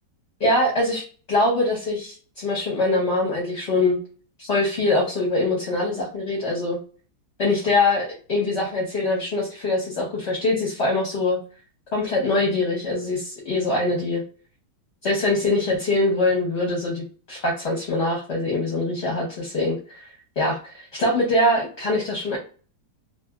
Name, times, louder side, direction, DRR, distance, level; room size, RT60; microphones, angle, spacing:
voice 1, 0.4-1.0 1.3-4.0 4.4-6.8 7.4-11.4 11.9-14.2 15.0-20.1 20.4-22.4, left 2 dB, 45° left, -4 dB, 0.9 m, -23 dB
2.9 x 2.6 x 2.3 m, 0.40 s
omnidirectional pair, 2.0 m